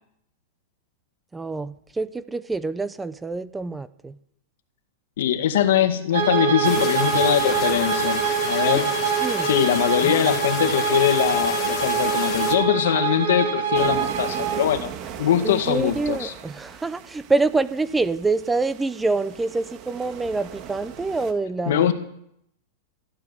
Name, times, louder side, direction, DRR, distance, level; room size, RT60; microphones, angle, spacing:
voice 1, 1.3-4.2 8.7-8.8 9.2-9.5 10.0-10.4 15.4-21.9, right 3 dB, 10° right, 15 dB, 0.5 m, -26 dB
voice 2, 5.2-8.9 9.4-14.9 15.2-16.3 21.7-21.9, left 10 dB, 75° left, 8 dB, 1.8 m, -22 dB
Bowed string instrument, 6.1-14.7, right 7 dB, 70° right, 4.3 m, -24 dB
sound 1, 6.6-12.5, left 9 dB, 30° left, 2.0 m, -32 dB
sound 2, 13.7-21.3, right 8 dB, 35° right, 1.7 m, -39 dB
14.0 x 12.5 x 6.7 m, 0.74 s
supercardioid pair, 155°, 0 cm